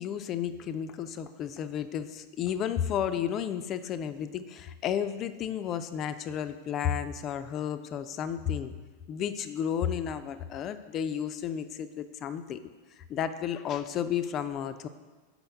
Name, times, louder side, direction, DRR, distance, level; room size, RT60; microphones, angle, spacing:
voice 1, 0.0-8.7 9.1-12.6 13.0-14.9, left 9 dB, 30° left, 11 dB, 0.3 m, -32 dB
5.5 x 4.3 x 5.5 m, 1.4 s
figure-of-eight pair, 90°, 0 cm